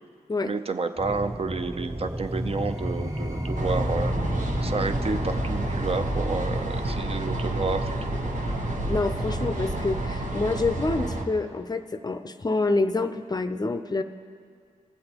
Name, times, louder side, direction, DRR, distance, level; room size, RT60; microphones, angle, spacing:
voice 1, 0.4-4.2 4.6-8.0 8.2-8.3, right 4 dB, 40° right, 8 dB, 0.5 m, -30 dB
sound 1, 1.0-10.0, equal, 20° right, 1.6 m, -32 dB
sound 2, 3.5-11.3, right 2 dB, 55° right, 1.1 m, -30 dB
voice 2, 8.9-14.0, left 3 dB, 25° left, 9 dB, 0.5 m, -27 dB
19.0 x 7.7 x 2.9 m, 2.1 s
supercardioid pair, 50°, 15 cm